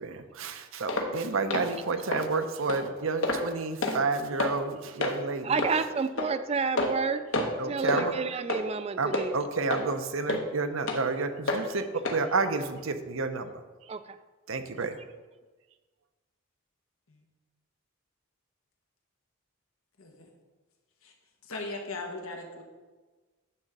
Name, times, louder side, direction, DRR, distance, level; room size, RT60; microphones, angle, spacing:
voice 1, 0.0-5.6 7.6-8.1 9.0-13.5 14.5-15.0, right 4 dB, 75° right, 8 dB, 0.7 m, -30 dB
sound 1, 0.9-1.1 1.5-1.7 2.1-2.2 2.7-2.8 3.2-3.5 3.8-4.0 4.4-4.5 5.0-5.2 5.6-5.7 6.2-6.3 6.8-7.0 7.3-7.6 7.9-8.1 8.5-8.6 9.1-9.3 9.7-9.8 10.3-10.4 10.9-11.0 11.5-11.6 12.0-12.2 12.6-12.7, left 2 dB, 65° left, 1.1 m, -28 dB
voice 2, 5.4-7.2 7.7-9.3 13.9-14.2, right 5 dB, 30° right, 12 dB, 0.3 m, -30 dB
voice 3, 20.0-20.3 21.0-21.1 21.4-22.6, left 2 dB, 85° left, 2 dB, 1.5 m, -38 dB
9.8 x 3.7 x 6.6 m, 1.3 s
head